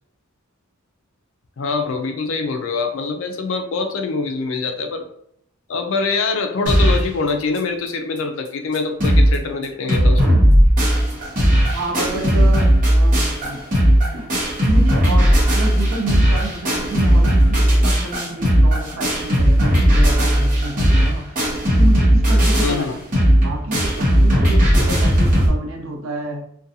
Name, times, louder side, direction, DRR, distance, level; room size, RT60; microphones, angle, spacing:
voice 1, 1.6-5.0 5.7-10.4 22.6-22.9, left 4 dB, 65° left, 5 dB, 0.4 m, -24 dB
sound 1, 6.7-7.1 7.6-7.7 7.9-8.0 8.5-8.6 8.7-9.4 9.6-25.5, equal, 40° right, 0.9 m, -16 dB
voice 2, 11.7-13.6 14.1-14.4 14.6-21.3 21.7-23.0 23.3-26.4, right 2 dB, 75° right, 1 dB, 0.6 m, -29 dB
2.5 x 2.2 x 2.7 m, 0.69 s
head